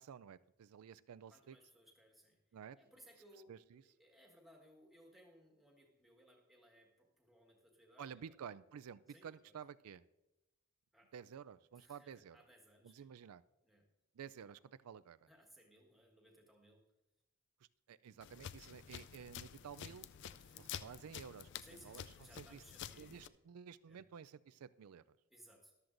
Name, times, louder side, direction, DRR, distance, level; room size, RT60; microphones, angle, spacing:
voice 1, 0.0-1.6 2.5-2.8 3.5-3.8 8.0-10.0 11.1-12.4 12.8-13.4 14.1-15.3 17.9-20.1 20.6-22.6 23.0-25.2, right 7 dB, 85° right, 16 dB, 0.4 m, -52 dB
voice 2, 1.3-2.4 2.7-3.5 3.8-8.3 9.1-9.4 10.9-11.1 11.7-13.1 13.6-13.9 15.3-16.8 18.6-18.7 20.4-20.7 21.6-23.3 23.9-24.0 25.3-25.7, equal, ahead, 0 dB, 1.6 m, -64 dB
sound 1, 18.2-23.3, left 9 dB, 50° left, 0.3 m, -50 dB
14.0 x 12.0 x 2.6 m, 0.98 s
head